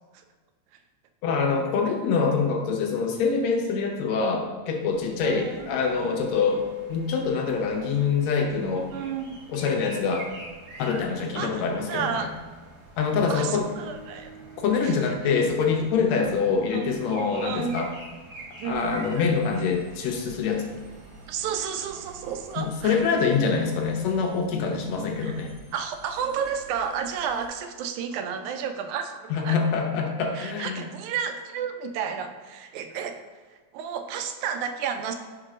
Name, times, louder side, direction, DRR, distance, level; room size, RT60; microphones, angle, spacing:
voice 1, 1.2-8.9 9.5-10.3 10.8-12.3 13.0-13.7 14.6-17.9 18.7-20.7 22.6-25.5 29.3-30.9, left 5 dB, 75° left, 2 dB, 1.8 m, -25 dB
sound 1, 4.9-24.4, right 2 dB, 55° right, 1.7 m, -47 dB
voice 2, 5.2-5.8 8.9-9.4 11.4-12.3 13.3-14.3 14.8-15.2 16.7-16.9 17.4-17.8 18.6-19.0 21.3-23.0 25.2-25.4 25.7-29.6 30.4-33.2 33.5-35.1, right 7 dB, 85° right, 7 dB, 2.0 m, -32 dB
Bowed string instrument, 13.2-17.5, right 4 dB, 55° left, 1.6 m, -48 dB
Engine, 18.7-27.5, right 3 dB, 35° right, 1.8 m, -51 dB
4.7 x 4.5 x 4.9 m, 1.4 s
omnidirectional pair, 3.3 m